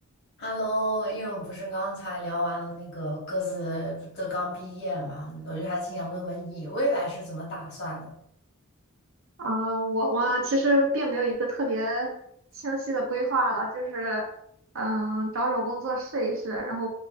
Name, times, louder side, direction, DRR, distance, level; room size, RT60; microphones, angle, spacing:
voice 1, 0.4-8.1, equal, 50° left, -4 dB, 1.1 m, -31 dB
voice 2, 9.4-12.1 12.6-14.3 14.7-16.9, right 1 dB, 65° right, 0 dB, 0.6 m, -27 dB
3.2 x 2.3 x 2.4 m, 0.72 s
head